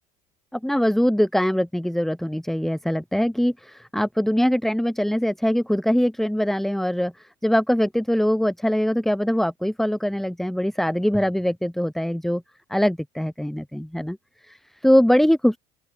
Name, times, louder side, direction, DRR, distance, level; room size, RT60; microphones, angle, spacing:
voice 1, 0.5-12.4 12.7-14.2 14.4-15.6, equal, ahead, 3.6 m, -22 dB
open air
supercardioid pair, 100°, 17 cm